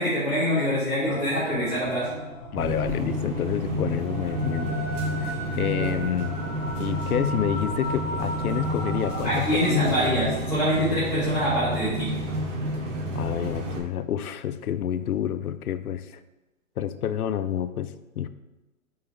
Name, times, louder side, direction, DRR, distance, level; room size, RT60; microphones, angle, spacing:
voice 1, 0.0-2.1 5.8-5.9 9.2-12.1, equal, 5° right, -16 dB, 2.1 m, -25 dB
sound 1, 1.0-10.6, equal, 15° left, 2.1 m, -36 dB
voice 2, 2.5-4.8 5.2-6.4 6.8-9.9 13.1-16.2 16.8-18.3, left 9 dB, 85° left, 12 dB, 0.6 m, -29 dB
sound 2, 2.6-13.8, equal, 55° right, 1.5 m, -30 dB
5.5 x 5.5 x 3.3 m, 1.1 s
hypercardioid pair, 160°, 43 cm